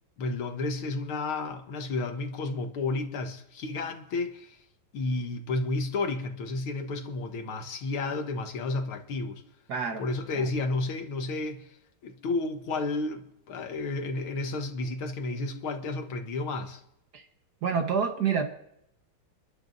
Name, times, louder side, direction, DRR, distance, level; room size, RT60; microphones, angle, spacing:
voice 1, 0.2-4.6 4.9-9.4 10.0-11.6 12.0-16.8, left 3 dB, 85° left, 2.1 m, -32 dB
voice 2, 9.7-10.0 10.3-10.5 17.1-17.2 17.6-18.5, right 6 dB, 55° right, 1.7 m, -28 dB
28.5 x 11.5 x 2.6 m
omnidirectional pair, 2.2 m